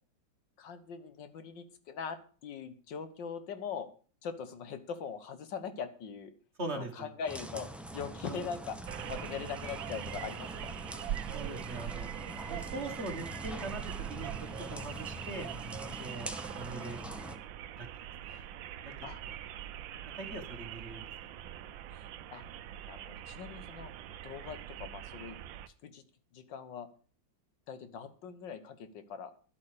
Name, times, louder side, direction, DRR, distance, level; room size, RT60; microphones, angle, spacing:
voice 1, 0.6-3.9 4.2-6.3 6.7-8.8 9.1-10.8 19.0-19.2 21.9-22.0 22.3-22.4 22.9-23.9 24.2-25.4 25.8-26.0 26.3-26.9 27.7-29.3, left 6 dB, 70° left, 10 dB, 1.8 m, -41 dB
voice 2, 6.6-7.1 8.3-8.5 11.3-12.1 12.5-13.8 14.1-15.5 16.0-17.4 17.8-17.9 18.2-18.5 18.8-18.9 20.2-21.3, right 2 dB, 35° right, 5 dB, 1.9 m, -42 dB
sound 1, 7.3-17.4, right 1 dB, ahead, 0.4 m, -44 dB
sound 2, 8.9-25.7, right 11 dB, 75° right, 1.4 m, -43 dB
11.5 x 8.4 x 6.7 m, 0.41 s
omnidirectional pair, 2.1 m